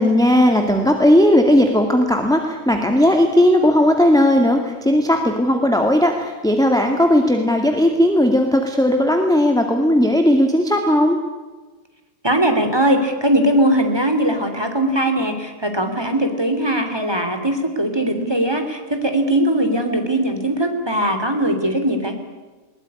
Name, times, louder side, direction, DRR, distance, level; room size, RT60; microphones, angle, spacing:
voice 1, 0.0-11.2, left 1 dB, ahead, 4 dB, 2.1 m, -16 dB
voice 2, 12.2-22.1, right 1 dB, 15° right, 5 dB, 3.1 m, -20 dB
21.5 x 20.0 x 9.9 m, 1.3 s
omnidirectional pair, 1.8 m